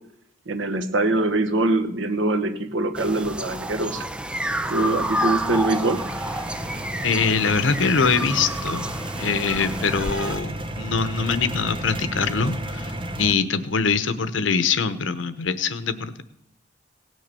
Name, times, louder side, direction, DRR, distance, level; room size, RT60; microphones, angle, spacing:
voice 1, 0.5-4.1 4.7-6.1, right 2 dB, 85° right, 8 dB, 1.2 m, -23 dB
sound 1, 3.0-10.4, equal, 5° right, 0.5 m, -29 dB
sound 2, 4.3-13.3, right 1 dB, 25° right, 1.0 m, -34 dB
voice 2, 7.0-8.9 9.2-12.9 13.2-16.2, left 5 dB, 90° left, 12 dB, 0.9 m, -23 dB
17.5 x 6.5 x 6.8 m, 0.79 s
head